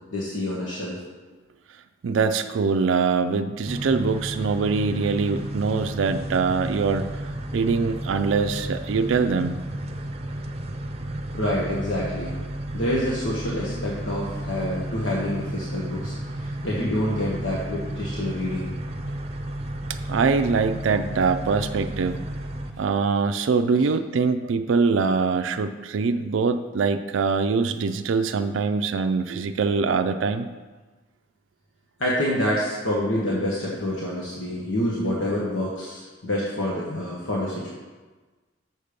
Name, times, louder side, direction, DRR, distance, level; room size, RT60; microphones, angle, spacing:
voice 1, 0.1-1.0 11.3-12.3 12.7-18.7 23.7-23.8 32.0-37.7, left 1 dB, 80° left, -5 dB, 1.4 m, -27 dB
voice 2, 2.0-7.2 7.5-9.6 20.1-22.2 22.8-30.5, right 5 dB, 75° right, 7 dB, 0.4 m, -23 dB
sound 1, 3.7-22.7, right 1 dB, 35° right, 0.6 m, -32 dB
6.7 x 6.4 x 5.1 m, 1.3 s
head